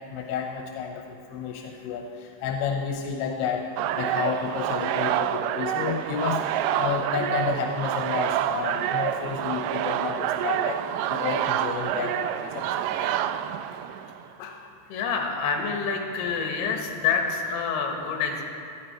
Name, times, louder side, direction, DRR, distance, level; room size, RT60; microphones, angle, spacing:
voice 1, 0.1-3.7 3.9-6.4 6.8-10.8 11.1-13.2 14.4-14.6, left 7 dB, 85° left, 2 dB, 3.1 m, -31 dB
sound 1, 3.8-14.2, right 11 dB, 90° right, 2.2 m, -27 dB
voice 2, 14.9-18.4, left 5 dB, 70° left, 1 dB, 3.5 m, -27 dB
17.5 x 13.0 x 4.4 m, 2.6 s
omnidirectional pair, 5.1 m